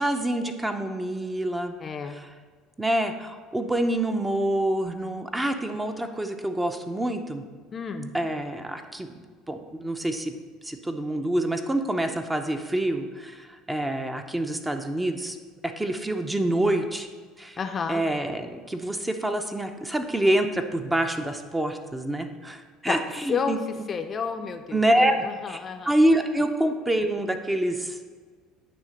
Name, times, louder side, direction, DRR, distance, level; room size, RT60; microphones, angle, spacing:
voice 1, 0.0-1.7 2.2-2.3 2.8-7.4 8.1-9.1 9.5-10.3 10.6-15.4 15.6-17.1 17.4-17.6 17.9-23.6 24.7-25.1 25.5-25.6 25.8-28.1, right 1 dB, 10° right, 6 dB, 0.6 m, -26 dB
voice 2, 1.8-2.2 7.7-8.1 17.6-18.1 22.9-23.0 23.3-23.6 23.9-25.9, left 6 dB, 30° left, 7 dB, 0.5 m, -30 dB
9.4 x 3.3 x 6.4 m, 1.5 s
supercardioid pair, 110°, 0 cm